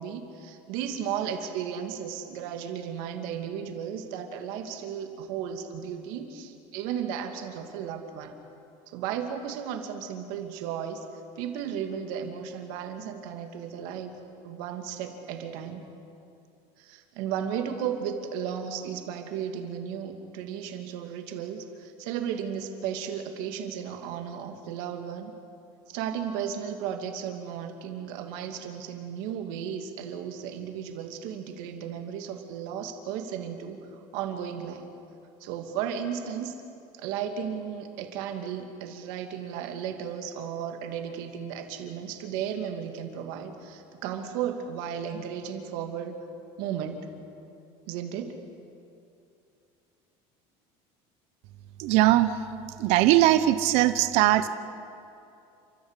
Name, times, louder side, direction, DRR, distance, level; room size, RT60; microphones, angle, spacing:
voice 1, 0.0-8.3 8.9-11.0 11.4-14.2 14.4-15.9 16.8-25.3 25.9-34.8 35.4-36.5 37.0-46.2 46.6-47.1 47.9-48.4, right 8 dB, 75° right, 5 dB, 2.5 m, -34 dB
voice 2, 51.8-52.3 52.8-54.5, right 14 dB, 60° right, 11 dB, 0.9 m, -20 dB
29.5 x 14.0 x 8.3 m, 2.7 s
cardioid pair, 170°, 13 cm